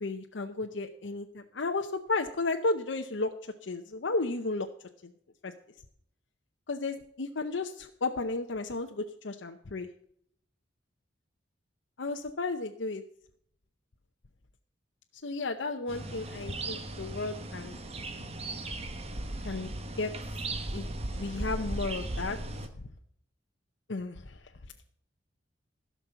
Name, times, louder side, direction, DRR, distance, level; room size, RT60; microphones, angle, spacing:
voice 1, 0.0-4.7 5.0-5.1 5.4-5.5 6.7-9.9 12.0-13.0 15.2-17.8 19.4-19.7 20.0-20.1 20.7-20.9 21.2-22.4 23.9-24.4, left 3 dB, 75° left, 4 dB, 0.8 m, -33 dB
sound 1, 15.9-22.7, right 2 dB, 35° right, 1.1 m, -37 dB
16.0 x 6.1 x 6.9 m, 0.69 s
head